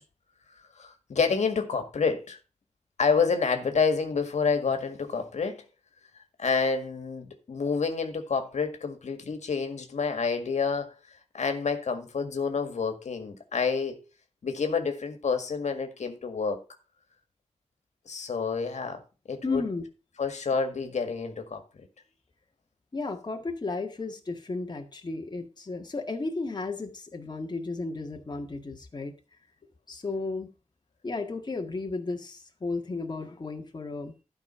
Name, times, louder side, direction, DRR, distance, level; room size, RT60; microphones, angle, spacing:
voice 1, 0.8-2.4 3.0-5.6 6.4-10.9 11.3-14.0 14.4-16.6 18.1-19.0 19.3-19.6 20.2-21.6, left 5 dB, 80° left, 1.8 m, -28 dB
voice 2, 19.4-19.9 22.9-29.1 29.9-30.5 31.0-34.1, left 3 dB, 35° left, 1.7 m, -34 dB
12.0 x 5.2 x 5.6 m
wide cardioid pair, 105°, 12 cm